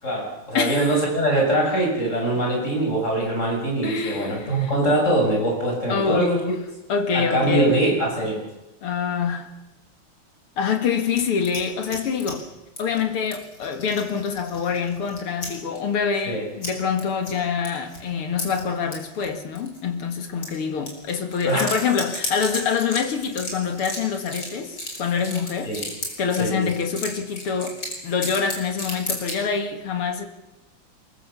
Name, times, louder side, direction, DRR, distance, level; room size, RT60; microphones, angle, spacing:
voice 1, 0.0-6.3 7.1-8.4 16.2-16.4 21.4-21.7 25.6-25.8 26.4-26.7, right 1 dB, 30° left, 7.3 m, -22 dB
voice 2, 0.5-0.9 3.8-4.7 5.9-6.6 6.9-7.8 8.8-9.5 10.6-12.5 12.8-25.7 26.2-27.8 28.0-30.3, left 6 dB, 80° left, 2.8 m, -25 dB
sound 1, 11.1-12.3 12.8-13.1 13.3-15.5 15.8-15.9 16.6-16.7 17.0-17.3 17.6-18.0 18.4-19.3 19.6-19.8 20.4-20.5 20.9-29.4, left 1 dB, 50° left, 5.9 m, -34 dB
24.0 x 22.0 x 6.9 m
omnidirectional pair, 2.4 m